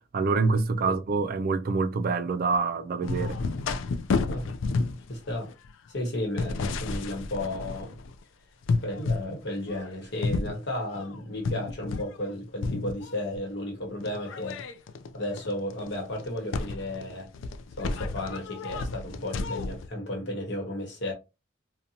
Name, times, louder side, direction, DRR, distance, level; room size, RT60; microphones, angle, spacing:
voice 1, 0.1-3.4, right 4 dB, 50° right, 0.3 m, -26 dB
sound 1, 3.0-8.2 8.6-9.3 9.7-12.3 12.6-13.4 14.0-19.9, left 4 dB, 90° left, 0.3 m, -32 dB
voice 2, 5.1-5.5 5.9-8.0 8.8-14.6 15.1-17.3 17.8-21.1, left 1 dB, 65° left, 1.0 m, -33 dB
2.6 x 2.1 x 2.7 m
head